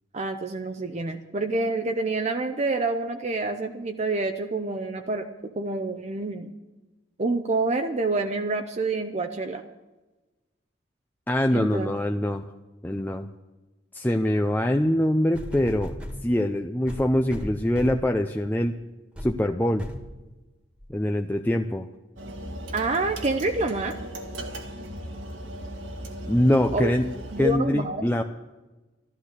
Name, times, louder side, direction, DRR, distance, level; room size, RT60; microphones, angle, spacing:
voice 1, 0.1-6.5 7.2-9.6 11.5-11.9 22.7-23.9 26.7-26.9 27.3-28.1, right 2 dB, 35° right, 5 dB, 0.7 m, -27 dB
voice 2, 11.3-12.5 12.8-13.3 13.9-15.9 16.2-18.7 19.2-19.8 20.9-21.9 26.3-27.1 27.4-28.2, left 1 dB, 10° left, 4 dB, 0.5 m, -24 dB
sound 1, 15.3-16.2 16.9-18.1 18.6-18.8 19.2-19.4 19.8-20.1 20.8-20.9, equal, 5° right, 1.7 m, -36 dB
sound 2, 22.2-27.6, right 1 dB, 85° right, 1.9 m, -37 dB
13.5 x 12.0 x 6.6 m, 1.1 s
head